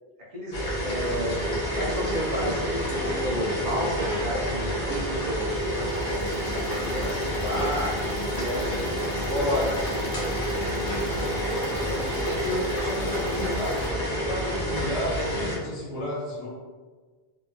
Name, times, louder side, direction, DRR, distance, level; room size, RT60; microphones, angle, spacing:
voice 1, 0.3-5.5 6.5-9.8, equal, 55° right, -5 dB, 0.6 m, -31 dB
sound 1, 0.5-15.6, equal, 55° left, 0.8 m, -28 dB
sound 2, 5.4-13.9, left 1 dB, 30° left, 0.3 m, -39 dB
voice 2, 11.4-16.5, left 1 dB, 75° left, -8 dB, 1.3 m, -33 dB
2.8 x 2.4 x 2.2 m, 1.4 s
omnidirectional pair, 1.0 m